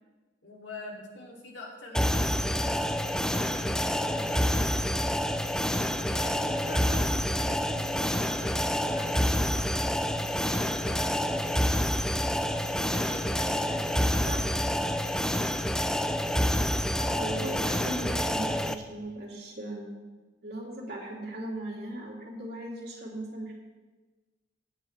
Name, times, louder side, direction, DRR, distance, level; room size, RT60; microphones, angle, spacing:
voice 1, 0.4-5.0 5.9-11.3 12.8-15.0, left 1 dB, 80° left, -2 dB, 2.9 m, -44 dB
sound 1, 1.9-18.7, equal, 5° left, 0.4 m, -28 dB
voice 2, 14.1-14.4 16.9-19.8 20.4-23.5, right 1 dB, 60° right, -3 dB, 3.1 m, -38 dB
16.5 x 10.5 x 3.3 m, 1.3 s
head